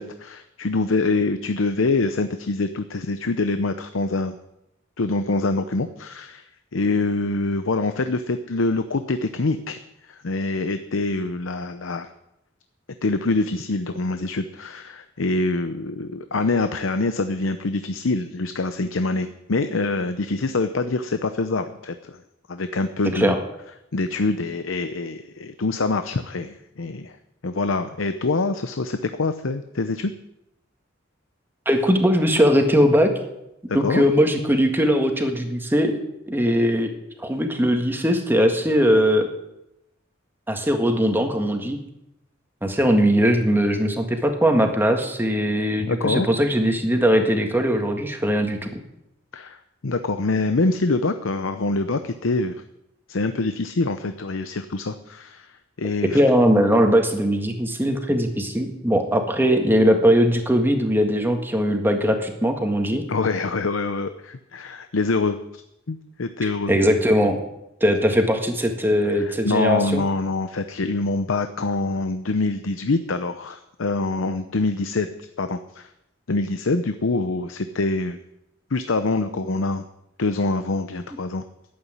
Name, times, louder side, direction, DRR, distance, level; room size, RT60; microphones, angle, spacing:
voice 1, 0.0-4.4 5.0-6.4 6.7-9.8 10.1-12.1 13.0-22.2 22.5-23.4 23.9-27.1 27.4-30.1 33.7-34.0 45.9-46.3 49.3-49.6 49.8-52.6 53.1-55.5 55.8-56.2 63.1-65.4 65.9-66.7 69.1-75.1 75.4-75.9 76.3-78.2 78.7-79.8 80.2-81.4, left 3 dB, 75° left, 9 dB, 0.7 m, -25 dB
voice 2, 31.7-33.1 33.7-36.0 36.3-36.9 37.2-39.3 40.5-41.8 42.6-48.8 56.1-63.1 66.7-67.4 67.8-70.0, equal, 10° right, 4 dB, 1.7 m, -20 dB
11.5 x 8.7 x 9.8 m, 0.87 s
head